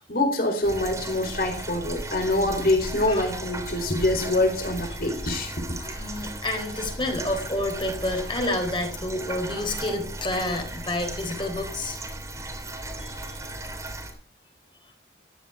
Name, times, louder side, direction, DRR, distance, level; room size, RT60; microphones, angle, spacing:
voice 1, 0.0-5.5 5.9-6.0, left 1 dB, 55° left, 4.3 m, -25 dB
sound 1, 0.6-14.1, right 1 dB, 15° right, 3.3 m, -36 dB
voice 2, 5.8-12.0 13.0-13.4, left 1 dB, 25° left, 4.1 m, -29 dB
15.0 x 13.5 x 5.0 m
head